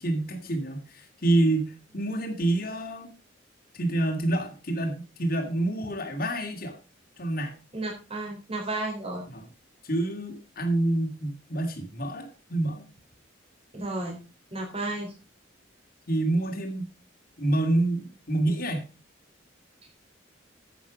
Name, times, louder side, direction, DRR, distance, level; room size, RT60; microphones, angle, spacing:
voice 1, 0.0-3.1 3.7-6.8 7.2-7.6 9.3-9.5 9.8-12.9 16.1-16.9 17.4-18.9, right 1 dB, 50° left, 2 dB, 2.3 m, -27 dB
voice 2, 7.7-9.3 13.7-14.2 14.5-15.1, right 2 dB, 30° right, 0 dB, 3.9 m, -32 dB
10.0 x 8.3 x 5.0 m, 0.32 s
head